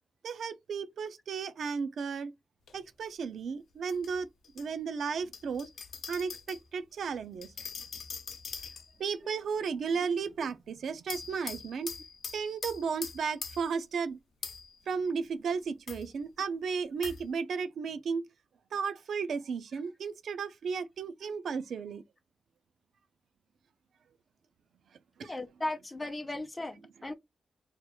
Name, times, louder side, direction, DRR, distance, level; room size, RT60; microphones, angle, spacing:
voice 1, 0.2-2.3 2.7-4.3 4.5-5.7 6.1-7.5 9.0-11.9 12.3-14.2 14.9-18.3 18.7-22.0 25.2-25.3, right 5 dB, 90° right, 0.4 m, -34 dB
sound 1, 2.7-2.8 3.9-4.7 5.3-6.6 7.4-9.1 11.1-13.8 14.4-14.8 15.9-16.1 17.0-17.2, left 6 dB, 85° left, 0.7 m, -42 dB
voice 2, 25.3-27.1, left 2 dB, 15° left, 0.5 m, -37 dB
2.9 x 2.3 x 4.1 m
wide cardioid pair, 170°, 0 cm